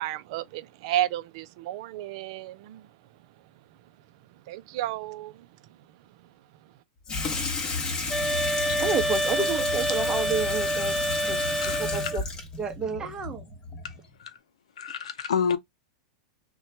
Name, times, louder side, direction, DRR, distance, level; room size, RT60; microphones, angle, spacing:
voice 1, 0.0-2.8 4.5-5.3, right 13 dB, 60° right, 0.4 m, -32 dB
Water tap faucet / Sink (filling or washing), 7.1-14.1, left 3 dB, 25° left, 0.9 m, -32 dB
sound 1, 8.1-12.2, right 1 dB, ahead, 0.4 m, -28 dB
voice 2, 8.8-12.2 12.6-13.4, right 4 dB, 20° right, 0.8 m, -31 dB
voice 3, 14.8-15.6, left 7 dB, 90° left, 0.5 m, -29 dB
2.8 x 2.2 x 2.7 m
hypercardioid pair, 120°, 3 cm